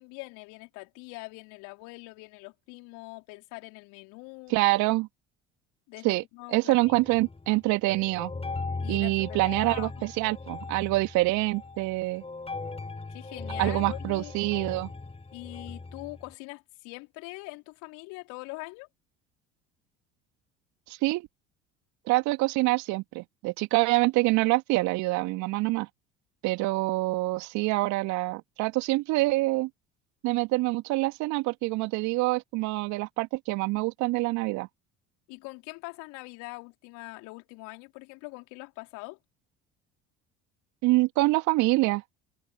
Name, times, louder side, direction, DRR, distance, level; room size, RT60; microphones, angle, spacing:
voice 1, 0.0-4.6 5.9-6.9 8.8-10.0 13.1-14.3 15.3-18.9 35.3-39.2, left 27 dB, 65° left, 4.6 m, -43 dB
voice 2, 4.5-5.1 6.0-6.2 6.5-8.3 8.9-12.2 13.6-14.9 20.9-21.3 22.1-25.9 26.4-29.7 30.2-34.7 40.8-42.0, right 21 dB, 60° right, 2.4 m, -26 dB
sound 1, 6.8-7.6 7.9-16.3, left 3 dB, 20° left, 6.7 m, -38 dB
figure-of-eight pair, 60°, 33 cm